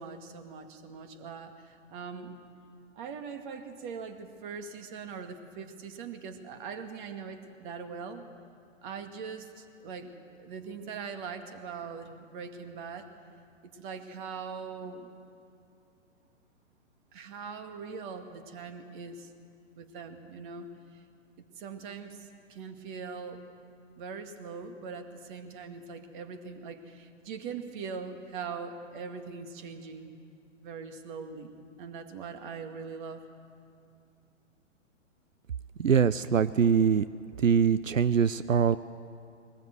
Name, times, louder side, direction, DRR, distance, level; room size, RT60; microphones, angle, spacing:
voice 1, 0.0-2.4 3.0-8.3 8.8-10.1 10.4-13.1 13.7-15.1 17.1-19.3 19.8-20.7 21.6-23.4 24.0-30.1 30.6-33.3, right 5 dB, 40° right, 7 dB, 2.1 m, -41 dB
voice 2, 35.8-37.0 37.4-38.8, right 7 dB, 90° right, 15 dB, 0.7 m, -23 dB
22.0 x 19.5 x 7.9 m, 2.5 s
figure-of-eight pair, 125°, 38 cm